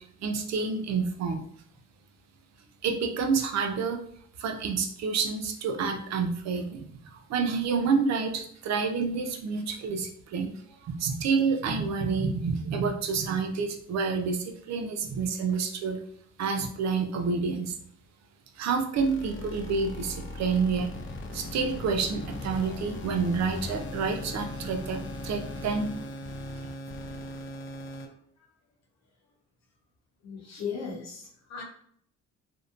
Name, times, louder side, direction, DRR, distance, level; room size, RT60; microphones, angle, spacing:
voice 1, 0.2-1.4 2.8-4.0 4.4-10.5 10.8-16.0 16.4-17.7 18.6-20.9 21.3-25.0 25.2-25.9, right 5 dB, 60° right, 3 dB, 0.5 m, -28 dB
sound 1, 19.0-28.0, left 1 dB, 45° left, 0.5 m, -38 dB
voice 2, 30.2-31.6, left 6 dB, 60° left, 0 dB, 0.9 m, -37 dB
2.7 x 2.1 x 2.5 m, 0.64 s
cardioid pair, 90°, 30 cm